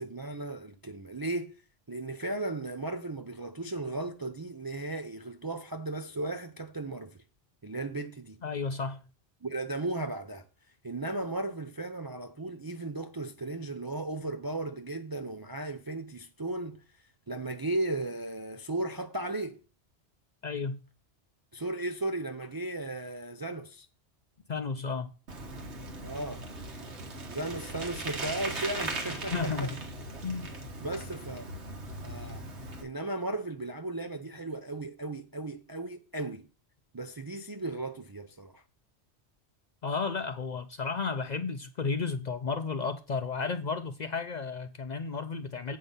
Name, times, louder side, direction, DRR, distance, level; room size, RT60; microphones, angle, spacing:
voice 1, 0.0-1.6 1.9-7.2 7.6-8.4 9.4-19.6 21.5-23.9 26.0-26.5 27.3-29.7 30.8-31.5 32.0-32.4 32.8-36.5 36.9-38.6, right 2 dB, 35° right, 0.4 m, -36 dB
voice 2, 8.4-9.1 20.4-20.8 24.5-25.1 29.3-29.7 30.2-30.5 39.8-45.8, left 4 dB, 55° left, 0.5 m, -33 dB
Bicycle, 25.3-32.8, right 2 dB, 75° right, 1.7 m, -39 dB
8.4 x 5.4 x 5.5 m
omnidirectional pair, 1.2 m